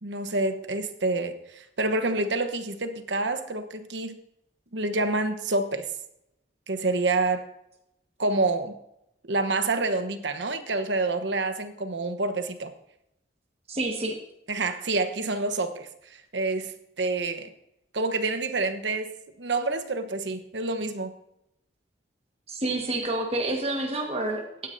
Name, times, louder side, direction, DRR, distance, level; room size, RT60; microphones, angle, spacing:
voice 1, 0.0-4.2 4.7-5.9 6.7-7.4 8.2-8.7 9.2-12.7 14.5-15.9 16.3-17.5 17.9-21.1, right 2 dB, 80° right, 8 dB, 1.1 m, -28 dB
voice 2, 13.7-14.1 22.5-24.7, right 2 dB, 35° right, 1 dB, 1.5 m, -28 dB
16.5 x 9.7 x 2.7 m, 0.81 s
head